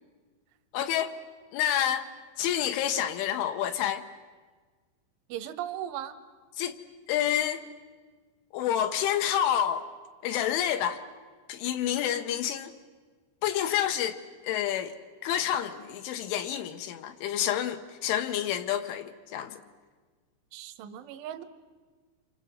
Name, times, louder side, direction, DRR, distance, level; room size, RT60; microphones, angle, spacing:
voice 1, 0.7-1.2 1.5-2.1 2.4-4.0 6.6-6.8 7.1-7.6 8.5-9.9 10.2-11.0 11.5-12.7 13.4-15.0 15.2-19.6, left 10 dB, 75° left, 7 dB, 3.3 m, -28 dB
voice 2, 5.3-6.2 20.5-21.4, right 11 dB, 80° right, 6 dB, 3.2 m, -37 dB
28.5 x 25.0 x 7.9 m, 1.4 s
omnidirectional pair, 5.9 m